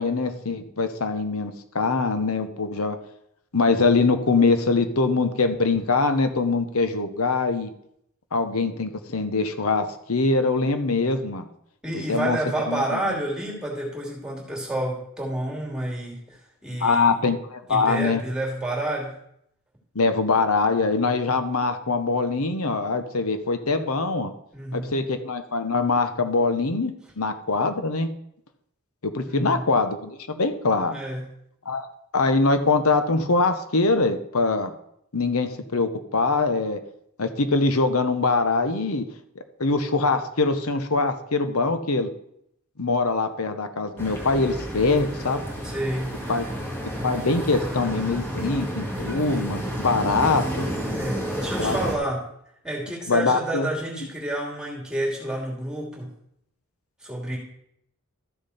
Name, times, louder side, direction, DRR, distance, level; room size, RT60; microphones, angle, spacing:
voice 1, 0.0-3.0 3.5-7.7 8.3-11.5 12.1-12.4 12.7-13.0 16.8-18.2 19.9-24.3 24.7-28.1 29.0-30.9 31.6-34.7 35.1-36.8 37.2-39.1 39.6-42.1 42.8-45.4 46.3-46.4 47.0-50.7 51.6-51.8 53.1-53.7, left 3 dB, 80° left, 9 dB, 1.1 m, -23 dB
voice 2, 11.8-17.2 17.7-19.2 24.5-25.0 29.3-29.7 30.8-31.3 45.6-46.2 50.9-52.3 52.6-56.1 57.0-57.4, right 1 dB, 5° right, -2 dB, 2.9 m, -29 dB
sound 1, 44.0-52.0, equal, 10° left, 2.1 m, -30 dB
13.5 x 6.6 x 4.3 m, 0.73 s
head